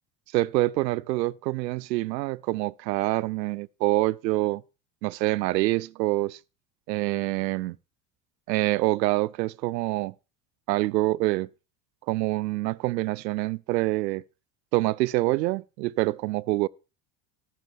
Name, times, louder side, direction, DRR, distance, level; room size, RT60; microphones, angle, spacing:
voice 1, 0.3-4.6 5.0-6.4 6.9-7.8 8.5-10.1 10.7-11.5 12.1-14.2 14.7-16.7, right 19 dB, 90° right, 0.6 m, -26 dB
20.0 x 8.2 x 3.6 m
hypercardioid pair, 85°, 49 cm